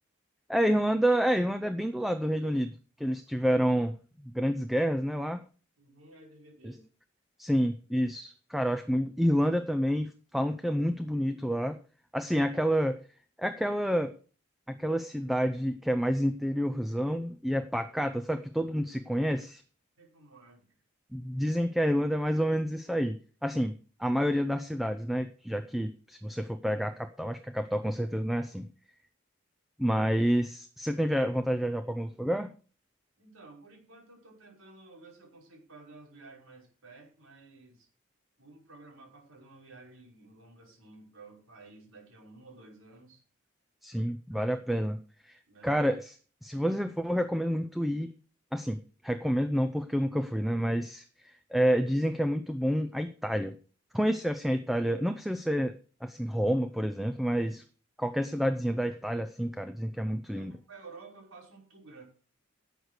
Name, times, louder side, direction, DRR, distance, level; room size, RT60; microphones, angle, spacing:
voice 1, 0.5-2.7 3.0-4.0 4.2-5.4 6.6-6.7 7.4-11.8 12.1-13.0 13.4-14.1 14.7-19.6 21.1-28.7 29.8-32.5 43.8-45.0 45.3-46.1 46.4-48.1 48.5-53.6 53.9-55.7 56.0-57.6 58.0-60.5, equal, ahead, 9 dB, 0.5 m, -29 dB
voice 2, 5.8-6.8 20.0-20.8 33.2-37.9 38.4-43.2 43.9-44.0 44.3-44.6 45.5-45.8 60.3-62.0, right 3 dB, 90° right, 0 dB, 5.5 m, -53 dB
11.5 x 8.1 x 6.3 m, 0.40 s
head